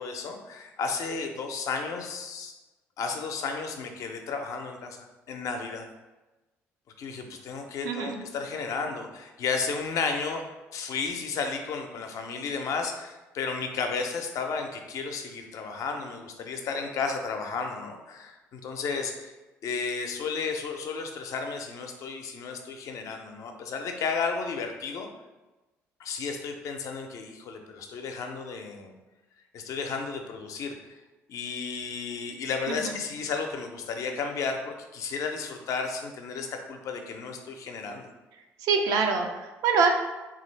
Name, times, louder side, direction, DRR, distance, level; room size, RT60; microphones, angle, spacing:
voice 1, 0.0-2.5 3.0-5.9 7.0-10.4 10.7-19.3 19.6-25.1 26.0-28.9 29.5-30.8 31.3-38.1, left 5 dB, 60° left, 4 dB, 0.5 m, -33 dB
voice 2, 7.8-8.2 32.7-32.9 38.6-39.9, right 5 dB, 70° right, 4 dB, 0.4 m, -25 dB
3.2 x 2.4 x 3.1 m, 1.1 s
supercardioid pair, 65°, 6 cm